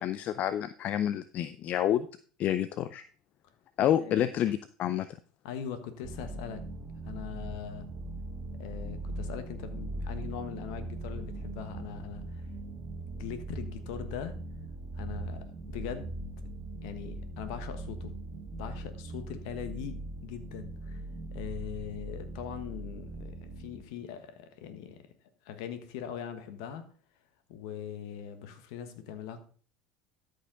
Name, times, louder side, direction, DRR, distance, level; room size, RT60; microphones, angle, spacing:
voice 1, 0.0-2.1 2.4-3.0 3.8-5.1, left 11 dB, 50° left, 14 dB, 0.4 m, -28 dB
voice 2, 4.0-4.3 5.4-6.6 7.0-7.9 8.6-12.5 13.1-14.4 14.9-16.2 16.8-18.1 18.5-21.0 21.3-25.1 25.4-26.8 27.5-29.4, left 8 dB, 70° left, 10 dB, 1.3 m, -41 dB
sound 1, 6.0-23.8, right 2 dB, 40° right, 1.5 m, -40 dB
13.0 x 5.2 x 3.8 m, 0.43 s
hypercardioid pair, 75°, 3 cm